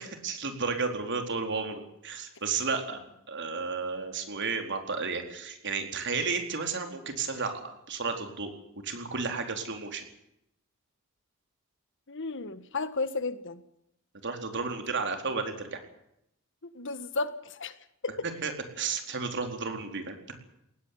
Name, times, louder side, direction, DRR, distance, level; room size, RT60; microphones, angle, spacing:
voice 1, 0.0-8.5 8.8-10.1 14.2-15.8 18.4-20.4, right 4 dB, 55° right, 6 dB, 4.3 m, -33 dB
voice 2, 12.1-13.6 16.6-17.8 18.0-18.3, left 3 dB, 60° left, 13 dB, 1.7 m, -33 dB
20.0 x 17.0 x 9.8 m, 0.79 s
head